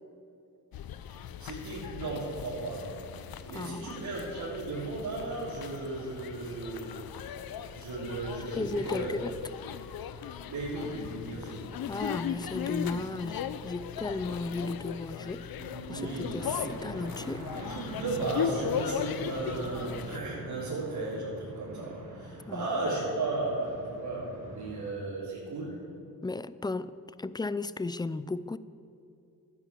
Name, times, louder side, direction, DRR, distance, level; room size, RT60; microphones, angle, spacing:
sound 1, 0.7-20.2, left 8 dB, 70° left, 0.8 m, -38 dB
voice 1, 1.2-9.2 10.5-11.7 15.6-16.4 17.3-25.8, right 2 dB, 80° right, -9 dB, 3.7 m, -35 dB
voice 2, 3.5-3.9 8.5-9.3 11.9-15.5 15.9-17.5 22.5-22.7 26.2-28.6, left 3 dB, 10° left, 16 dB, 0.4 m, -35 dB
sound 2, 16.4-24.9, right 1 dB, 55° right, 4.2 m, -45 dB
12.0 x 10.5 x 7.6 m, 2.7 s
cardioid pair, 80°, 37 cm